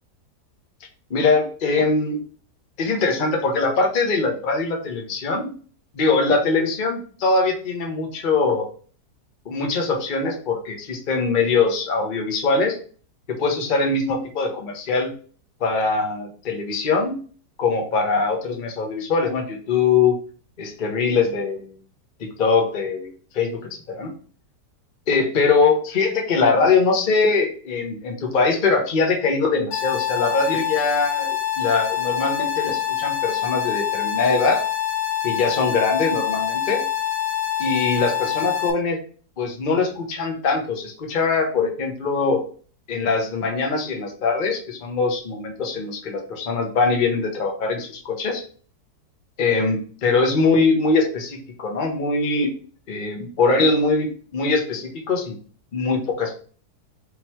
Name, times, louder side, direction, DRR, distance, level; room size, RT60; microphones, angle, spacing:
voice 1, 1.1-2.2 2.8-5.5 5.9-8.7 9.5-12.7 13.3-15.1 15.6-17.2 17.6-20.2 20.6-21.7 22.2-24.1 25.1-31.3 31.6-34.6 35.2-36.8 37.6-39.0 39.4-42.4 42.9-48.4 49.4-52.5 52.9-54.1 54.3-55.3 55.7-56.4, left 4 dB, 40° left, 1 dB, 0.8 m, -22 dB
sound 1, 29.7-38.7, left 11 dB, 70° left, 1.2 m, -25 dB
3.7 x 3.0 x 4.4 m, 0.42 s
omnidirectional pair, 1.8 m